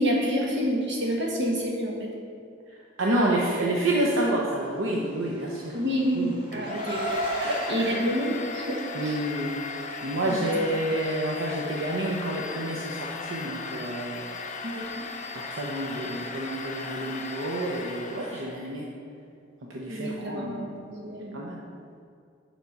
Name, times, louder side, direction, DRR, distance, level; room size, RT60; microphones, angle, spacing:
voice 1, 0.0-2.1 5.7-7.2 7.7-9.2 10.3-10.5 14.6-15.0 19.9-21.4, equal, 65° right, -2 dB, 1.6 m, -28 dB
voice 2, 3.0-5.8 6.1-6.7 7.4-8.0 8.9-14.3 15.3-18.9 19.6-20.7 21.3-21.6, right 1 dB, 85° right, -2 dB, 0.8 m, -29 dB
Car, 5.2-7.7, right 1 dB, 25° right, 1.6 m, -33 dB
Domestic sounds home sounds, 6.5-18.6, left 4 dB, 40° left, 0.6 m, -37 dB
7.1 x 6.0 x 5.3 m, 2.4 s
head